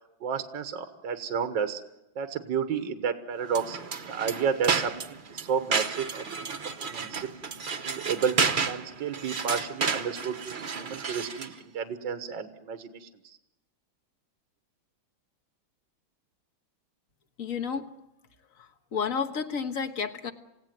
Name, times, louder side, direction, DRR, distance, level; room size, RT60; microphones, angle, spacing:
voice 1, 0.2-1.8 2.2-3.8 4.1-5.0 5.3-6.6 6.8-7.3 7.8-8.4 8.7-13.1, right 7 dB, 70° right, 8 dB, 2.0 m, -31 dB
sound 1, 3.5-11.6, right 5 dB, 40° right, 0.7 m, -31 dB
voice 2, 17.4-18.0 18.6-20.3, left 6 dB, 45° left, 6 dB, 1.7 m, -31 dB
29.0 x 16.0 x 9.3 m, 0.90 s
omnidirectional pair, 2.1 m